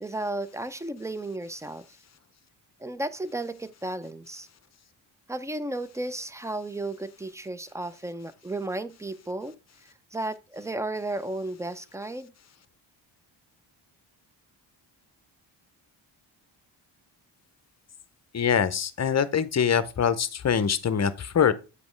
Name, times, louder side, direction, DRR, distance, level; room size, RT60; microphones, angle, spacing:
voice 1, 0.0-1.9 2.8-4.5 5.3-9.5 9.8-12.3, right 2 dB, 5° right, 0.5 m, -34 dB
voice 2, 18.3-21.5, left 7 dB, 35° left, 0.7 m, -24 dB
8.2 x 5.2 x 3.2 m
cardioid pair, 100°, 47 cm